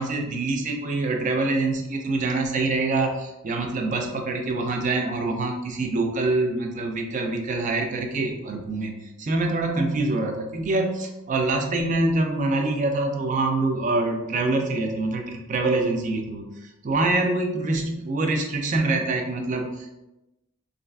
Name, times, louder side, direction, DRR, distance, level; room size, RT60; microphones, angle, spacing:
voice 1, 0.0-20.0, right 2 dB, 35° right, 4 dB, 0.3 m, -25 dB
3.0 x 2.4 x 2.2 m, 0.96 s
head